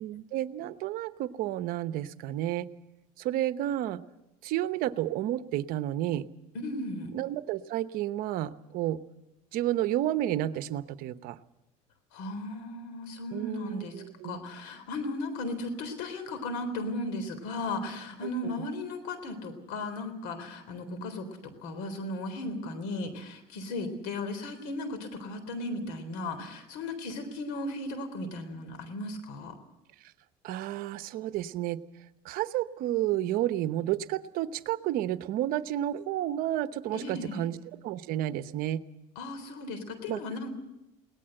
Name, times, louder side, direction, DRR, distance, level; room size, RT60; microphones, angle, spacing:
voice 1, 0.0-2.7 3.2-4.0 4.4-6.3 7.1-9.0 9.5-11.4 13.3-14.4 18.4-18.5 30.4-31.8 32.2-37.6 37.8-38.8 40.1-40.2, right 13 dB, 70° right, 13 dB, 0.9 m, -31 dB
voice 2, 6.5-7.1 12.1-13.9 14.2-29.6 36.9-37.5 39.2-40.5, left 2 dB, 85° left, 10 dB, 3.8 m, -36 dB
22.0 x 18.0 x 7.8 m, 0.93 s
supercardioid pair, 100°, 16 cm